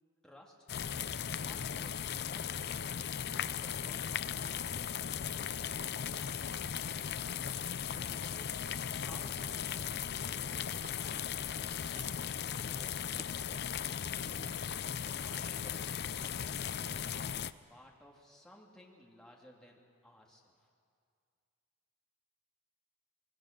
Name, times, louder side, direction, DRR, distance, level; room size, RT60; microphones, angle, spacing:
voice 1, 0.2-0.7 0.9-4.8 8.0-8.7 9.0-9.9 10.3-13.0 14.7-15.9 16.3-17.3 17.7-20.7, left 1 dB, 5° left, -2 dB, 2.4 m, -58 dB
sound 1, 0.7-17.5, left 8 dB, 50° left, 0.5 m, -37 dB
sound 2, 10.8-16.8, right 3 dB, 35° right, 0.7 m, -59 dB
25.5 x 21.0 x 6.5 m, 2.3 s
head